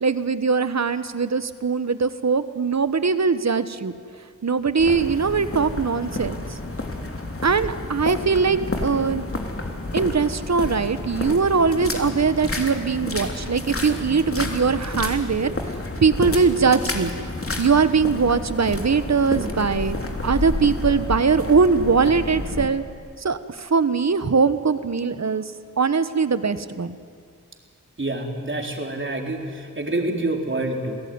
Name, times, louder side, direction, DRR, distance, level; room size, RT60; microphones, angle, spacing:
voice 1, 0.0-3.9 4.4-6.3 7.4-9.2 9.9-15.5 16.0-17.1 17.6-20.0 20.2-22.8 23.2-25.4 25.8-27.0, right 5 dB, 60° right, 12 dB, 1.3 m, -21 dB
sound 1, 4.8-22.7, left 2 dB, 45° left, 3.2 m, -30 dB
voice 2, 28.0-31.0, right 2 dB, 40° right, 2 dB, 4.0 m, -27 dB
28.5 x 17.5 x 9.7 m, 2.2 s
wide cardioid pair, 65°, 31 cm